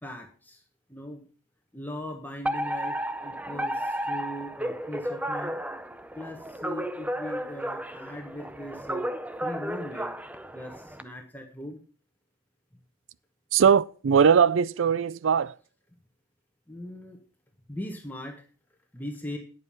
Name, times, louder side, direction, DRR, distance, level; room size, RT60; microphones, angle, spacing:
voice 1, 0.0-0.6 0.9-1.3 1.7-5.6 6.1-10.1 10.5-11.8 16.7-17.2 17.7-18.4 18.9-19.4, left 1 dB, 10° left, 1.4 m, -39 dB
Alarm, 2.4-11.0, equal, 5° right, 0.5 m, -33 dB
voice 2, 13.5-15.5, right 7 dB, 70° right, 0.4 m, -20 dB
9.2 x 8.1 x 5.5 m
head